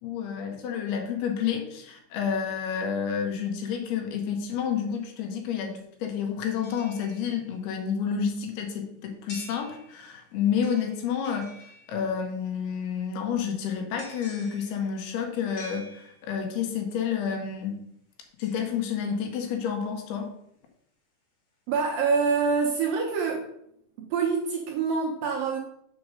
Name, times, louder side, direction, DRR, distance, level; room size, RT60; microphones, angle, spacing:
voice 1, 0.0-11.6 11.9-17.8 18.4-20.3, left 7 dB, 75° left, 3 dB, 2.8 m, -30 dB
sound 1, 6.5-7.7 9.3-10.2 10.6-12.3 14.0-16.5 18.4-19.6 20.1-20.2, left 1 dB, 45° left, 1.9 m, -49 dB
voice 2, 21.7-23.4 24.0-25.6, right 5 dB, 75° right, -1 dB, 2.2 m, -26 dB
6.3 x 4.6 x 6.4 m, 0.74 s
omnidirectional pair, 4.9 m